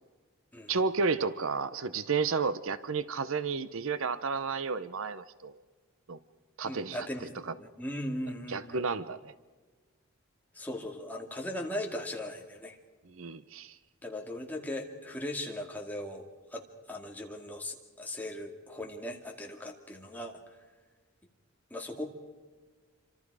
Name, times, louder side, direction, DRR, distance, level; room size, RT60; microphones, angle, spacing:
voice 1, 0.7-5.6 6.1-6.2 6.6-7.1 7.5-7.6 8.5-9.3 13.1-13.8, right 4 dB, 60° right, 14 dB, 0.7 m, -32 dB
voice 2, 6.6-8.9 10.5-12.8 14.0-16.2 16.5-16.6 16.9-20.3 21.7-22.1, left 1 dB, 5° left, 1 dB, 2.3 m, -38 dB
27.0 x 25.5 x 4.9 m, 1.4 s
head